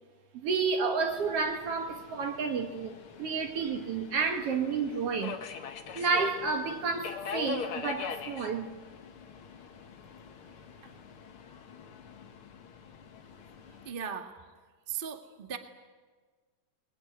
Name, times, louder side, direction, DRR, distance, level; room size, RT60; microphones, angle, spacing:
voice 1, 0.3-5.4 6.0-8.7, right 5 dB, 55° right, 2.0 m, -30 dB
Subway metro underground, 1.1-13.9, left 6 dB, 50° left, 1.9 m, -43 dB
voice 2, 13.8-14.4 14.9-15.6, right 7 dB, 30° right, 0.9 m, -37 dB
23.0 x 21.0 x 9.6 m
omnidirectional pair, 3.7 m